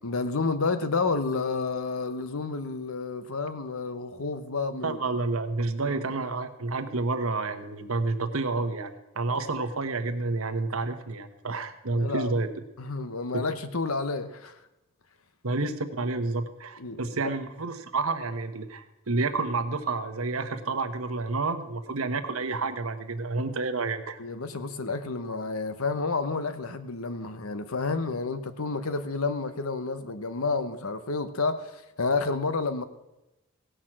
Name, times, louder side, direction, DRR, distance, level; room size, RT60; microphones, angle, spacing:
voice 1, 0.0-5.0 5.8-6.0 11.9-12.3 12.8-14.6 16.8-17.3 24.2-32.8, left 4 dB, 80° left, 1.0 m, -30 dB
voice 2, 4.8-12.5 13.3-13.4 15.4-24.2, right 3 dB, 80° right, 1.1 m, -29 dB
17.0 x 6.3 x 7.5 m
head